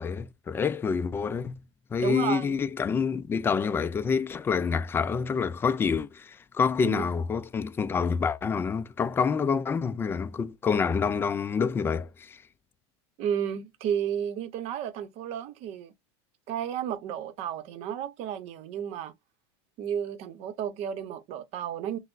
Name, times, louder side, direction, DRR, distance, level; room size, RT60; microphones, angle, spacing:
voice 1, 0.0-1.5 1.9-12.4, left 6 dB, 15° left, 0.3 m, -27 dB
voice 2, 2.0-2.6 6.8-7.1 13.2-15.9 16.5-19.1 19.8-22.0, right 9 dB, 50° right, 0.7 m, -32 dB
5.8 x 2.0 x 2.4 m
supercardioid pair, 130°, 14 cm